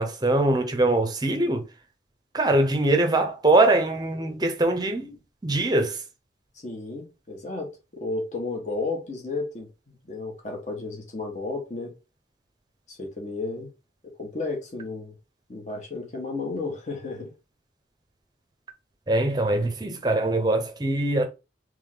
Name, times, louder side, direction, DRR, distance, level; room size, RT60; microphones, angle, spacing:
voice 1, 0.0-1.6 2.3-5.1 5.4-6.0 19.1-21.3, right 2 dB, 20° right, 0.7 m, -22 dB
voice 2, 6.6-11.9 12.9-13.7 14.2-15.1 15.5-17.3, left 3 dB, 40° left, 1.2 m, -33 dB
3.5 x 3.2 x 3.7 m
head